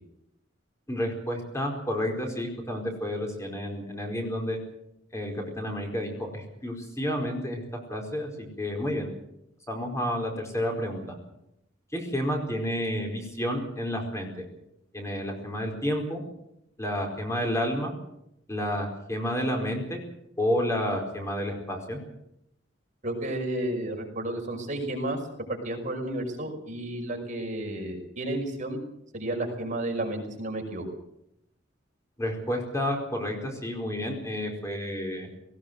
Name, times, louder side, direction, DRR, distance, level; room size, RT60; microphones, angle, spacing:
voice 1, 0.9-4.6 5.1-7.6 7.9-8.3 8.6-9.1 9.7-11.2 11.9-14.3 14.9-16.2 16.8-17.9 18.5-20.0 20.4-22.0 32.2-35.3, equal, 15° left, 2 dB, 4.7 m, -30 dB
voice 2, 23.0-25.2 25.5-28.8 29.1-30.8, right 1 dB, 40° right, 2 dB, 5.6 m, -32 dB
19.0 x 19.0 x 7.9 m, 0.79 s
head